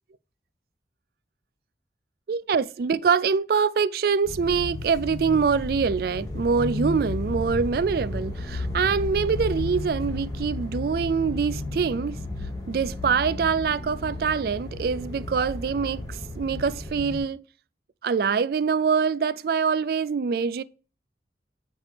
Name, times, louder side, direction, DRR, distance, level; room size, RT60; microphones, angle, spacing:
voice 1, 2.3-12.2 12.7-17.4 18.0-20.6, right 5 dB, 55° right, 0.3 m, -24 dB
sound 1, 4.3-17.2, left 2 dB, 20° left, 1.4 m, -33 dB
7.3 x 4.9 x 3.3 m
head